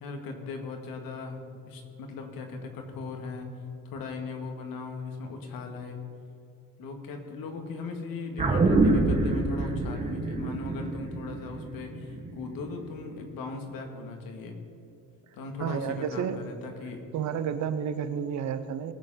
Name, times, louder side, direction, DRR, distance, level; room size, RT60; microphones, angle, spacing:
voice 1, 0.0-1.4 1.7-3.5 3.8-6.0 6.8-14.6 15.3-17.0, left 4 dB, 85° left, 3 dB, 2.2 m, -38 dB
sound 1, 8.4-13.0 13.3-13.4, right 2 dB, 20° right, 1.5 m, -26 dB
voice 2, 15.6-16.4 17.1-18.9, right 8 dB, 55° right, 12 dB, 0.8 m, -31 dB
19.5 x 7.9 x 5.7 m, 2.8 s
cardioid pair, 175°, 34 cm